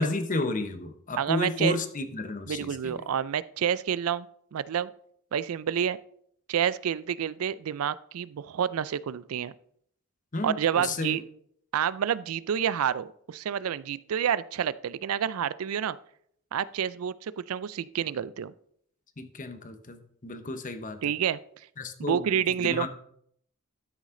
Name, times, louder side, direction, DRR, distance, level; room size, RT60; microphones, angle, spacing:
voice 1, 0.0-3.0 10.3-11.2 19.2-21.0 21.8-22.3 22.6-22.9, left 2 dB, 40° left, 8 dB, 1.0 m, -32 dB
voice 2, 1.2-1.8 2.5-4.3 4.5-4.9 5.3-6.0 6.5-9.5 10.4-11.2 11.7-16.0 16.5-18.5 21.0-21.4 22.0-22.9, right 8 dB, 90° right, 18 dB, 0.4 m, -28 dB
12.5 x 6.3 x 3.8 m, 0.67 s
head